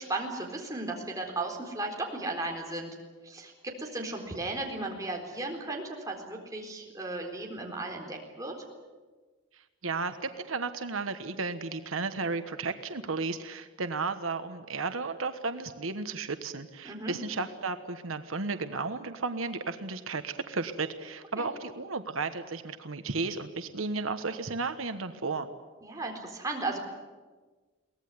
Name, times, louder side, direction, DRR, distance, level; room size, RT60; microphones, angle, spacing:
voice 1, 0.0-3.0 3.2-8.6 16.8-17.1 21.4-21.5 25.8-26.8, right 2 dB, 15° right, 1 dB, 4.1 m, -35 dB
voice 2, 9.8-25.5, right 4 dB, 85° right, 9 dB, 1.3 m, -34 dB
23.5 x 18.0 x 9.6 m, 1.3 s
head